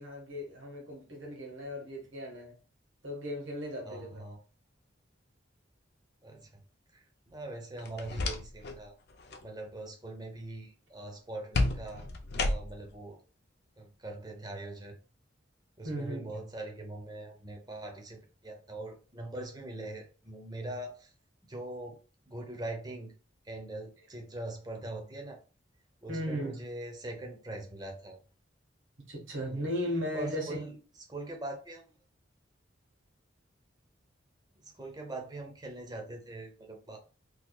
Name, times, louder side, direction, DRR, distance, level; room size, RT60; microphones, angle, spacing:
voice 1, 0.0-2.5 3.0-4.2 15.8-16.3 26.1-26.6 29.1-30.6, equal, 75° right, 1.4 m, -36 dB
voice 2, 3.8-4.4 6.2-6.6 6.9-9.0 9.4-12.1 12.3-13.2 13.8-15.0 15.8-21.1 21.4-22.0 22.3-23.1 23.4-25.4 26.0-28.2 29.4-29.7 30.1-30.8 31.1-31.9 34.6-37.0, right 2 dB, 20° right, 0.7 m, -42 dB
sound 1, 7.8-8.8 9.1-9.5 11.5-13.0, left 2 dB, 55° left, 0.5 m, -32 dB
4.0 x 3.0 x 2.3 m
head